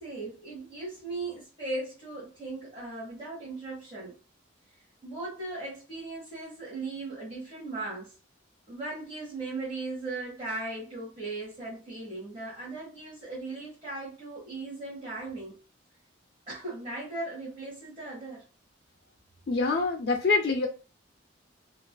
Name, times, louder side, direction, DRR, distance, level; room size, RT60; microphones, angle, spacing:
voice 1, 0.0-4.2 5.0-8.1 8.7-15.6 16.5-18.4, right 2 dB, 30° right, 1.0 m, -38 dB
voice 2, 19.5-20.7, left 4 dB, 55° left, 0.4 m, -25 dB
2.3 x 2.3 x 2.2 m
head